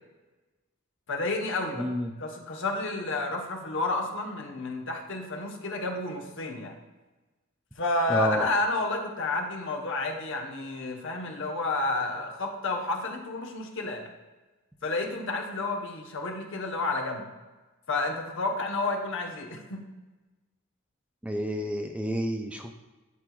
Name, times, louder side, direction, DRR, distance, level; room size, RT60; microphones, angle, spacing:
voice 1, 1.1-1.9 2.2-6.7 7.8-14.1 14.8-17.3 17.9-19.9, left 2 dB, 60° left, 2 dB, 1.0 m, -30 dB
voice 2, 1.8-2.1 8.1-8.5 21.2-22.7, equal, 5° right, 4 dB, 0.4 m, -29 dB
11.0 x 4.5 x 2.3 m, 1.2 s
head